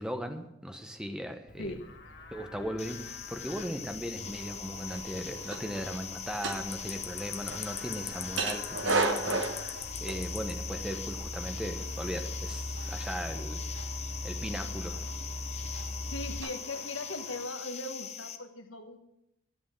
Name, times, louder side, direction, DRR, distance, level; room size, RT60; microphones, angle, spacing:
voice 1, 0.0-1.8 2.3-13.6 14.2-15.1, equal, 5° right, 6 dB, 1.0 m, -38 dB
Livestock farm animals working animals, 1.5-16.4, left 1 dB, 60° left, 1.8 m, -42 dB
sound 1, 2.8-18.4, left 8 dB, 35° left, 0.8 m, -41 dB
sound 2, 4.2-17.5, right 3 dB, 75° right, 1.3 m, -38 dB
voice 2, 16.1-19.0, left 2 dB, 80° left, 6 dB, 1.5 m, -39 dB
13.5 x 8.4 x 7.4 m, 0.84 s
head